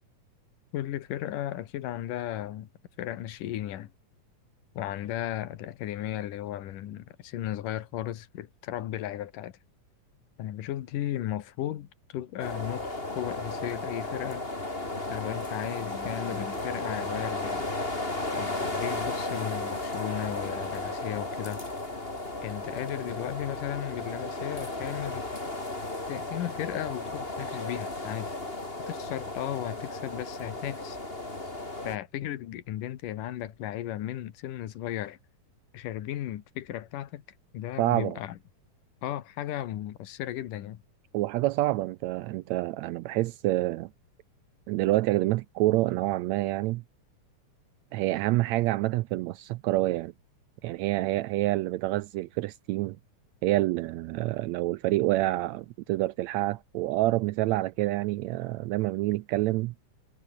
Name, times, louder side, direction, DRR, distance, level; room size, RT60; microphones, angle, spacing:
voice 1, 0.7-2.7 3.0-3.9 4.8-9.5 10.4-14.5 15.1-17.6 18.3-21.6 22.4-25.3 26.1-28.3 28.9-31.0 31.8-35.2 35.7-37.2 37.5-38.4 39.0-40.8, left 12 dB, 85° left, 3.0 m, -35 dB
sound 1, 12.4-32.0, left 2 dB, 15° left, 4.3 m, -34 dB
voice 2, 37.8-38.2 41.1-43.9 44.7-46.8 47.9-50.1 50.6-53.0 53.4-59.7, right 17 dB, 85° right, 1.6 m, -27 dB
omnidirectional pair, 3.7 m